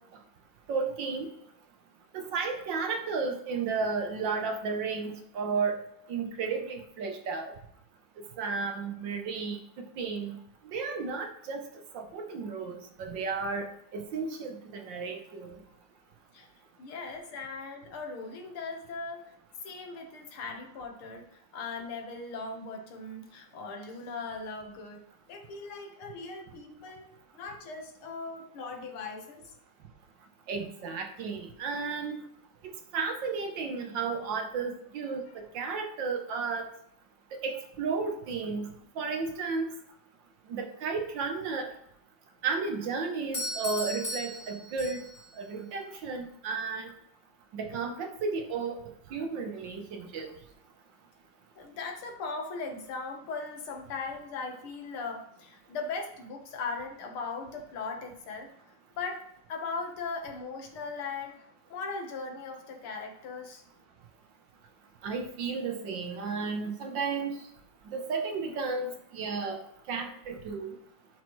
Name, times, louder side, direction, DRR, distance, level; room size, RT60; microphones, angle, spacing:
voice 1, 0.7-1.3 2.1-5.8 6.1-7.5 8.4-10.4 10.6-11.6 11.9-13.7 13.9-15.6 30.5-32.2 32.6-35.2 35.5-36.7 37.4-38.7 39.0-39.7 40.5-41.7 42.4-45.0 45.4-46.9 47.5-48.8 49.1-50.3 65.0-67.4 67.9-69.6 69.9-70.7, right 4 dB, 65° right, 4 dB, 1.5 m, -33 dB
voice 2, 16.8-19.2 19.6-25.0 25.3-27.1 27.3-29.4 35.0-35.5 51.6-58.5 59.0-59.2 59.5-63.6, left 4 dB, 75° left, 2 dB, 2.2 m, -39 dB
Doorbell, 43.3-45.3, left 1 dB, 15° left, 1.5 m, -36 dB
12.0 x 5.8 x 3.1 m, 0.73 s
omnidirectional pair, 2.4 m